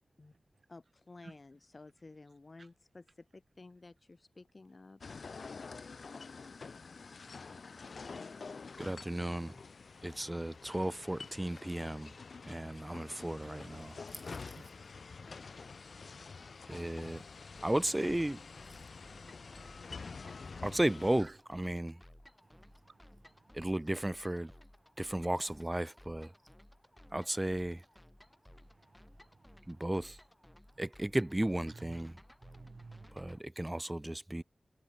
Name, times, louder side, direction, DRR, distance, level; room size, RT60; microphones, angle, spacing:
voice 1, 0.7-5.0 14.3-14.8 15.3-15.7, left 3 dB, 45° left, 2.8 m, -54 dB
sound 1, 5.0-21.2, left 4 dB, 75° left, 0.5 m, -48 dB
voice 2, 8.8-9.5 10.0-12.1 12.5-14.2 16.7-17.2 17.6-18.5 20.6-22.0 23.5-24.5 25.0-26.3 27.1-27.8 29.7-30.2 30.8-32.2 33.1-34.4, right 1 dB, 15° right, 0.3 m, -34 dB
sound 2, 17.5-33.4, left 1 dB, 10° left, 1.1 m, -59 dB
voice 3, 22.5-23.2 29.6-29.7 31.8-31.9 32.4-33.3, right 3 dB, 55° right, 0.6 m, -53 dB
cardioid pair, 60°, 0 cm